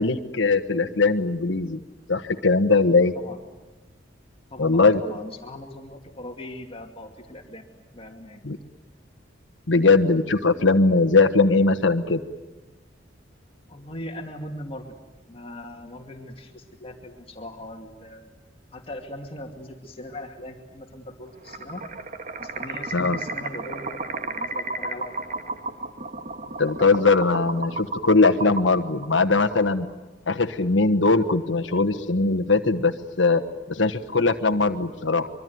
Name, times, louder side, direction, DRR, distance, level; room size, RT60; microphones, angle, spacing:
voice 1, 0.0-1.8 2.1-3.1 4.6-5.0 8.4-8.6 9.7-12.2 22.9-23.2 26.6-29.9 30.3-33.4 33.7-35.3, left 3 dB, 75° left, 6 dB, 1.3 m, -20 dB
voice 2, 4.5-7.6 7.9-8.4 13.7-14.8 15.3-18.3 18.7-21.8 22.4-25.1, left 1 dB, 30° left, 3 dB, 2.4 m, -40 dB
sound 1, 21.4-29.9, right 3 dB, 45° right, 1.5 m, -33 dB
25.0 x 24.0 x 9.4 m, 1.1 s
head